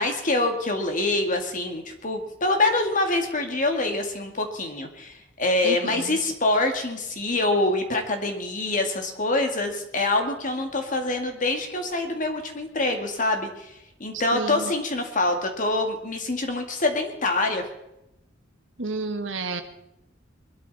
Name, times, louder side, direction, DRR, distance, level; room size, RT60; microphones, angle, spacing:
voice 1, 0.0-17.6, left 2 dB, 45° left, 4 dB, 2.1 m, -25 dB
voice 2, 5.6-6.2 14.3-14.7 18.8-19.6, right 3 dB, 80° right, 6 dB, 1.7 m, -30 dB
22.5 x 13.0 x 4.2 m, 0.88 s
head